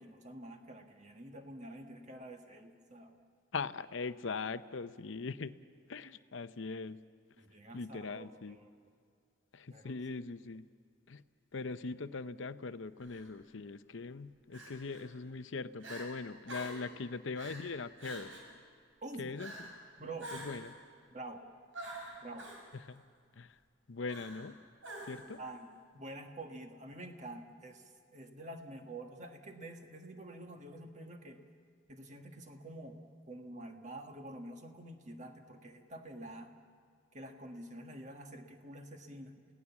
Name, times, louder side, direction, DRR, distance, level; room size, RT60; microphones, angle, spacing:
voice 1, 0.0-3.2 7.4-8.7 9.7-9.9 19.0-19.3 20.0-20.3 21.1-21.4 22.2-22.5 25.4-27.8 28.1-31.4 31.9-33.0 33.3-36.5 37.1-39.3, right 1 dB, 35° right, 4 dB, 1.6 m, -48 dB
voice 2, 3.5-5.5 5.9-7.0 7.7-8.6 9.5-10.7 11.1-11.2 11.5-18.4 19.2-19.5 20.3-20.7 22.8-23.0 23.4-23.6 23.9-24.6 25.0-25.4, left 4 dB, 70° left, 12 dB, 0.6 m, -41 dB
Crying sobbing, 13.0-13.3 14.5-15.0 15.5-15.6 15.8-16.1 16.5-16.9 17.3-17.7 18.0-18.5 19.4-19.7 20.2-20.7 21.7-22.6 24.1-24.5 24.8-25.3, right 1 dB, 75° right, 5.9 m, -46 dB
28.5 x 17.0 x 7.2 m, 2.2 s
head